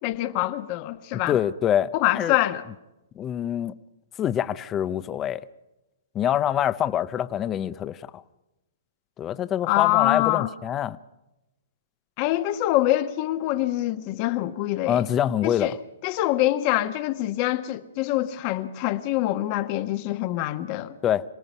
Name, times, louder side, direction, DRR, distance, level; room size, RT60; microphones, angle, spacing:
voice 1, 0.0-1.4 1.9-2.6 9.7-10.5 12.2-15.0 15.4-15.8 16.0-20.9, left 15 dB, 40° left, 1.3 m, -25 dB
voice 2, 1.1-2.4 3.2-3.7 4.2-5.4 6.1-8.2 9.2-11.0 14.9-15.7 21.0-21.2, left 10 dB, 25° left, 0.7 m, -25 dB
27.5 x 18.0 x 5.5 m
hypercardioid pair, 130°, 0 cm